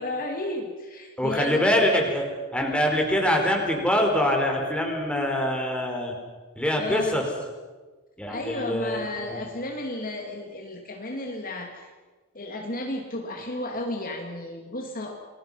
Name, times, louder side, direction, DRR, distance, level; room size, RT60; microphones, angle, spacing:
voice 1, 0.0-1.7 6.8-7.3 8.3-11.9 12.3-15.1, left 1 dB, 40° left, 2 dB, 2.6 m, -33 dB
voice 2, 1.2-2.3 2.5-6.1 6.6-7.2 8.2-9.4, equal, 5° left, 1 dB, 4.7 m, -24 dB
29.0 x 22.0 x 5.8 m, 1.3 s
head